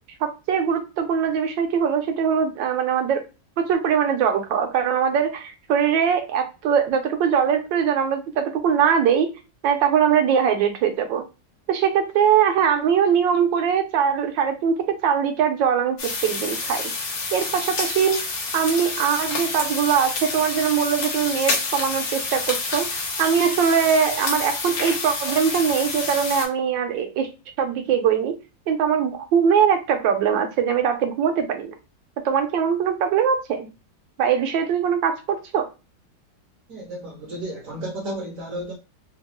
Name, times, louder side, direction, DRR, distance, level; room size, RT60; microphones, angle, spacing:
voice 1, 0.2-3.2 3.6-9.3 9.6-11.2 11.7-16.8 17.3-18.2 18.5-27.3 27.6-28.4 28.7-31.7 32.2-33.7 34.2-35.7, right 7 dB, 80° right, 1.4 m, -21 dB
sound 1, 16.0-26.5, left 3 dB, 85° left, 1.8 m, -28 dB
voice 2, 36.7-38.7, right 1 dB, 60° right, 1.0 m, -33 dB
4.0 x 2.2 x 2.9 m
omnidirectional pair, 2.0 m